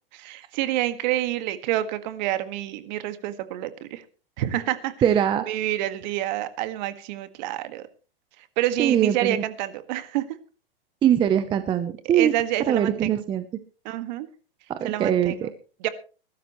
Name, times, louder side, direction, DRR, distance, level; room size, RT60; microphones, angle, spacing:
voice 1, 0.1-4.0 4.4-4.9 5.5-7.8 8.6-10.2 12.1-13.1 13.9-14.3 14.8-15.5 15.8-15.9, right 14 dB, 45° right, 11 dB, 1.7 m, -28 dB
voice 2, 5.0-5.5 8.8-9.4 11.0-12.3 12.7-13.4 14.7-15.5, right 9 dB, 15° right, 11 dB, 0.7 m, -22 dB
22.0 x 12.5 x 3.1 m, 0.35 s
hypercardioid pair, 145°, 30 cm